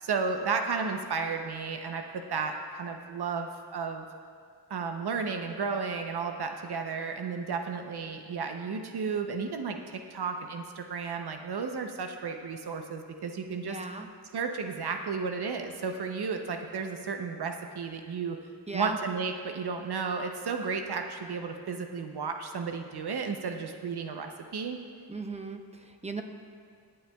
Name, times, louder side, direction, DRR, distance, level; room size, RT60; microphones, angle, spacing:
voice 1, 0.0-4.0 4.7-13.8 14.3-18.4 18.7-24.8, right 5 dB, 75° right, 5 dB, 0.7 m, -33 dB
voice 2, 13.6-14.1 18.7-19.0 25.1-26.2, right 3 dB, 15° right, 5 dB, 0.8 m, -37 dB
23.5 x 8.7 x 2.3 m, 2.2 s
wide cardioid pair, 95°, 40 cm